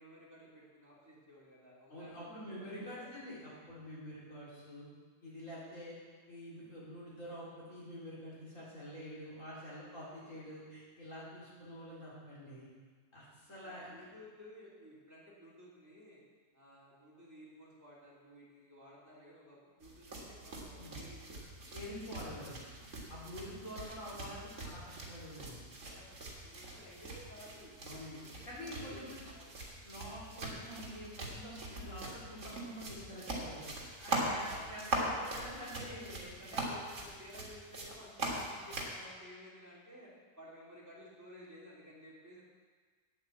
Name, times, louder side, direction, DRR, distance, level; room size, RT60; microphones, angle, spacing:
voice 1, 0.0-3.1 9.9-10.3 13.5-16.2 16.5-21.4 23.2-23.5 25.8-27.8 28.3-29.4 34.2-34.6 36.4-42.4, equal, 10° right, -7 dB, 2.8 m, -55 dB
voice 2, 1.9-4.9 5.2-6.0 6.3-12.7 13.1-13.9 20.8-21.0 21.7-22.7 23.1-25.6 27.8-29.0 29.8-33.7 34.0-36.6, equal, 50° left, -8 dB, 4.4 m, -47 dB
sound 1, 19.8-39.0, right 2 dB, 50° right, 2.2 m, -42 dB
8.9 x 8.5 x 7.8 m, 1.5 s
omnidirectional pair, 1.7 m